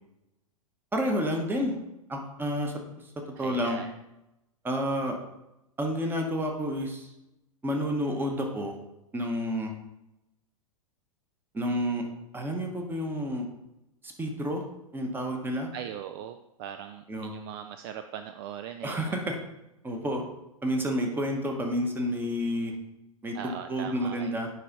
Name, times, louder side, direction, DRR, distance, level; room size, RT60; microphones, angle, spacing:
voice 1, 0.9-1.8 2.1-2.7 3.4-3.8 4.6-5.2 5.8-7.1 7.6-8.8 9.1-9.7 11.5-12.0 12.3-13.5 14.0-14.6 14.9-15.7 17.1-17.3 18.8-19.4 19.8-20.2 20.6-22.7 23.2-24.5, equal, 10° right, 3 dB, 1.1 m, -30 dB
voice 2, 3.4-3.9 15.7-19.1 23.3-24.4, right 9 dB, 45° right, 8 dB, 0.4 m, -40 dB
9.8 x 3.3 x 3.9 m, 0.91 s
figure-of-eight pair, 105°, 18 cm